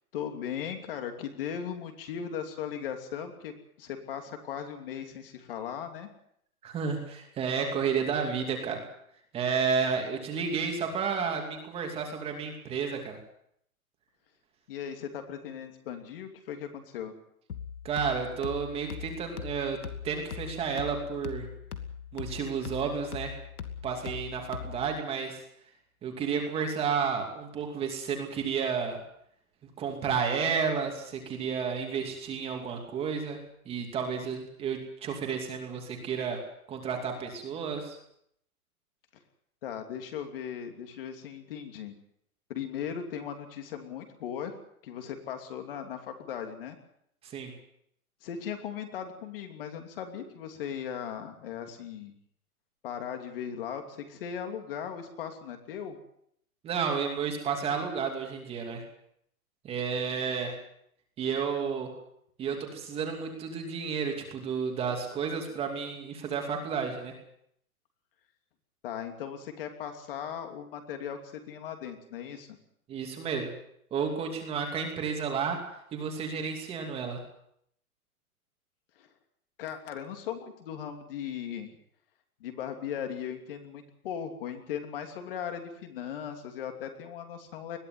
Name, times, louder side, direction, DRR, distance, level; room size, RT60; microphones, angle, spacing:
voice 1, 0.1-3.5 3.8-6.1 14.7-17.1 39.6-42.0 42.5-44.5 44.8-46.8 48.2-52.1 52.8-56.0 68.8-71.2 71.5-72.6 79.0-79.1 79.6-81.7 82.4-87.8, left 8 dB, 40° left, 5 dB, 3.0 m, -38 dB
voice 2, 6.6-8.8 9.3-13.2 17.8-19.8 20.0-21.5 22.1-23.4 23.8-25.4 26.0-29.0 29.8-33.4 33.6-36.4 36.7-38.0 47.2-47.5 56.6-58.8 59.6-60.6 61.2-61.9 62.4-67.2 72.9-73.5 73.9-75.6 75.9-77.2, right 6 dB, 15° right, 3 dB, 2.7 m, -31 dB
sound 1, 17.5-25.0, left 7 dB, 80° left, 2.7 m, -41 dB
21.5 x 14.5 x 9.5 m, 0.71 s
hypercardioid pair, 165°, 44 cm